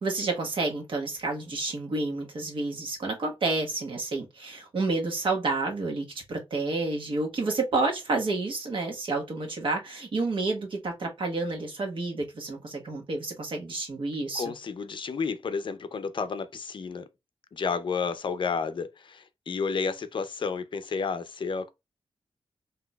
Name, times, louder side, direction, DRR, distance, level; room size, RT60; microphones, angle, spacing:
voice 1, 0.0-14.5, right 3 dB, 60° right, 1.2 m, -30 dB
voice 2, 14.3-17.1 17.5-21.7, left 5 dB, 55° left, 0.5 m, -31 dB
5.9 x 2.8 x 2.3 m
wide cardioid pair, 175°, 10 cm